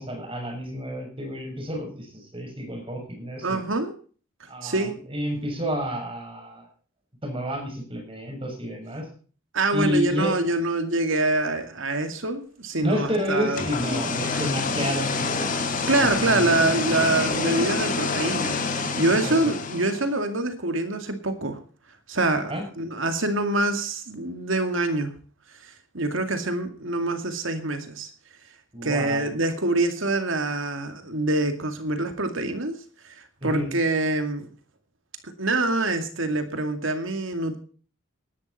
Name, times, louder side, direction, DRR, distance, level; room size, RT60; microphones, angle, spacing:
voice 1, 0.0-3.6 4.5-6.7 7.2-9.1 9.7-10.4 12.8-15.6 16.0-17.2 19.2-19.3 22.5-22.6 28.7-29.3 33.4-33.7, equal, 25° right, 2 dB, 6.9 m, -30 dB
voice 2, 3.4-3.9 4.6-4.9 9.5-13.6 15.9-21.6 22.1-25.1 25.5-28.1 28.8-32.8 33.0-34.5 35.4-37.6, right 2 dB, 75° right, 7 dB, 2.3 m, -25 dB
sound 1, 13.4-20.1, left 4 dB, 40° left, 2.3 m, -27 dB
19.0 x 11.5 x 4.3 m, 0.41 s
head